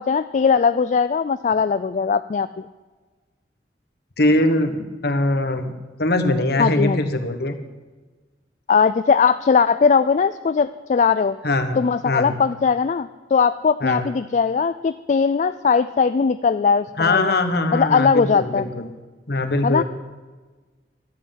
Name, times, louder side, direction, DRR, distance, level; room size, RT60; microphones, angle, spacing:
voice 1, 0.0-2.5 6.6-7.0 8.7-11.4 11.8-17.3 17.7-18.6 19.6-19.8, left 5 dB, 40° left, 12 dB, 0.3 m, -19 dB
voice 2, 4.2-5.7 6.0-7.6 11.4-11.8 12.0-12.4 13.8-14.1 17.0-18.9 19.3-19.8, left 2 dB, 60° left, 7 dB, 1.3 m, -21 dB
12.5 x 7.8 x 8.9 m, 1.3 s
head